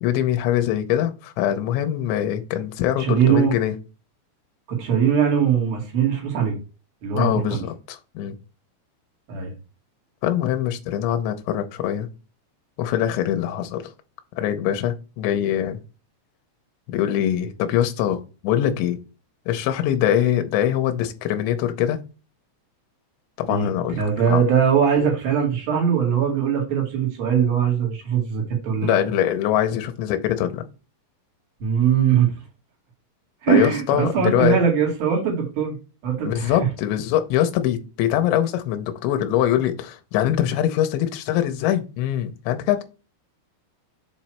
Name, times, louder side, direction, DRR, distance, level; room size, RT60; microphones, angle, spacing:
voice 1, 0.0-3.7 7.1-8.4 10.2-12.1 12.8-13.8 14.4-15.8 16.9-19.0 19.5-22.0 23.4-24.4 28.8-30.6 33.5-34.6 36.2-42.8, left 11 dB, 80° left, 2.9 m, -23 dB
voice 2, 3.0-3.6 4.7-6.6 7.0-7.6 9.3-9.5 23.5-23.7 23.9-29.0 31.6-32.3 33.4-35.7 36.0-36.6, right 7 dB, 55° right, 3.4 m, -21 dB
7.6 x 3.1 x 4.4 m
omnidirectional pair, 5.5 m